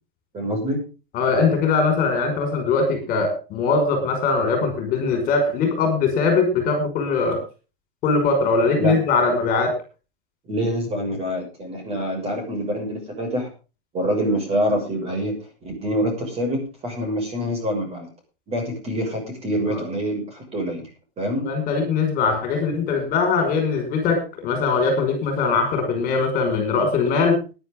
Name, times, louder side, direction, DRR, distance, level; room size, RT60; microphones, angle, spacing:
voice 1, 0.3-0.8 8.8-8.9 10.4-13.5 13.9-15.3 15.6-18.1 18.5-20.9 21.2-21.5, equal, 20° right, 3 dB, 6.3 m, -25 dB
voice 2, 1.1-7.4 8.0-9.7 19.7-19.8 21.4-27.4, left 4 dB, 30° left, 5 dB, 5.7 m, -21 dB
19.0 x 11.0 x 3.8 m, 0.33 s
supercardioid pair, 155°, 29 cm